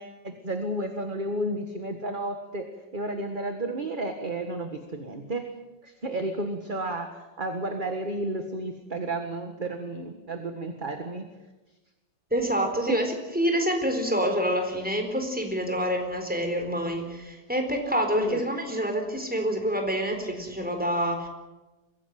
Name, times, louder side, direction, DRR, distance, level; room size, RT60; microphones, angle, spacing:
voice 1, 0.0-2.7 2.9-5.5 5.8-11.2 12.9-13.0 18.2-18.4, right 1 dB, 30° right, 6 dB, 1.8 m, -32 dB
voice 2, 12.3-21.3, equal, 5° right, 4 dB, 4.1 m, -27 dB
23.5 x 16.5 x 9.3 m, 1.1 s
omnidirectional pair, 1.9 m